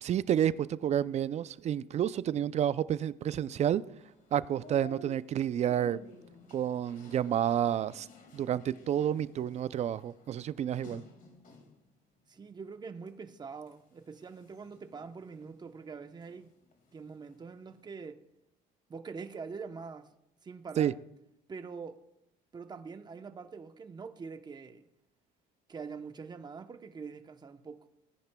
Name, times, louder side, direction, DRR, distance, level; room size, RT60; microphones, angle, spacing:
voice 1, 0.0-3.8 4.3-6.0 6.5-8.1 8.3-11.0 20.8-20.9, right 10 dB, 40° right, 0.4 m, -30 dB
sound 1, 4.0-11.9 12.3-13.1 13.6-16.5 16.7-17.9, left 3 dB, 50° left, 2.1 m, -53 dB
voice 2, 12.3-16.5 16.9-18.2 18.9-20.1 20.4-21.0 21.5-22.0 22.5-24.9 25.7-27.9, right 5 dB, 25° right, 0.8 m, -44 dB
18.0 x 10.5 x 2.3 m
cardioid pair, 110°, 17 cm